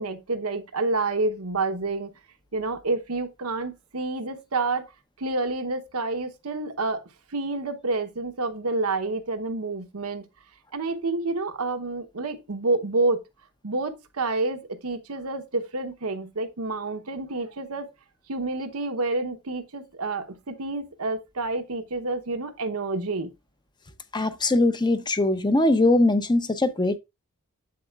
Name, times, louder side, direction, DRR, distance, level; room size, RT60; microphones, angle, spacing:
voice 1, 0.0-2.1 2.5-4.9 5.2-7.0 7.3-10.3 10.7-13.2 13.6-17.9 18.3-23.3, right 3 dB, 90° right, 1.0 m, -28 dB
voice 2, 24.1-27.0, left 2 dB, 20° left, 0.7 m, -21 dB
8.0 x 7.7 x 2.4 m
head